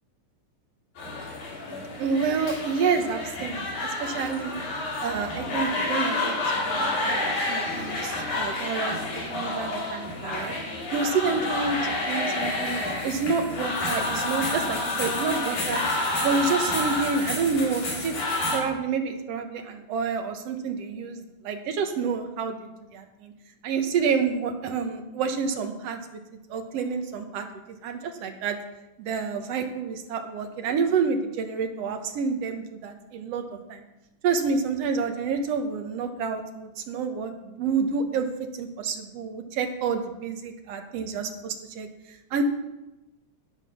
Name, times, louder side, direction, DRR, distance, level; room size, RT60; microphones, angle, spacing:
sound 1, 1.0-18.6, left 2 dB, 85° left, 4.8 m, -29 dB
voice 1, 2.0-4.6 5.0-10.5 10.9-15.8 16.2-18.1 18.5-23.3 23.6-26.0 26.5-27.5 27.8-28.6 29.0-33.4 33.7-33.8 34.2-42.4, right 5 dB, 65° right, 6 dB, 2.1 m, -29 dB
12.0 x 9.1 x 6.0 m, 0.98 s
omnidirectional pair, 3.3 m